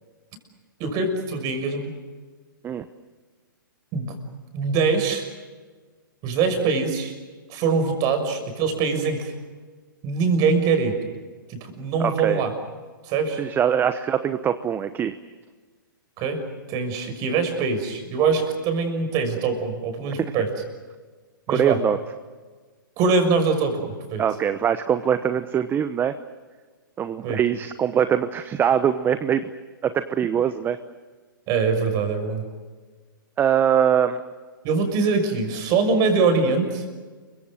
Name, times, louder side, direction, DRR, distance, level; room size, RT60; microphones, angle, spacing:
voice 1, 0.8-1.9 3.9-4.1 4.5-5.3 6.2-7.1 7.5-9.3 10.0-11.0 11.5-12.5 13.0-13.4 16.2-16.4 16.7-20.5 21.5-21.8 23.0-24.2 27.2-27.4 31.5-32.4 34.6-36.8, right 4 dB, 35° right, 6 dB, 6.2 m, -23 dB
voice 2, 12.0-12.4 13.4-15.2 21.5-22.0 24.2-26.1 27.0-29.5 29.8-30.8 33.4-34.2, right 8 dB, 20° right, 11 dB, 0.9 m, -22 dB
29.5 x 24.0 x 6.5 m, 1.4 s
figure-of-eight pair, 120°, 11 cm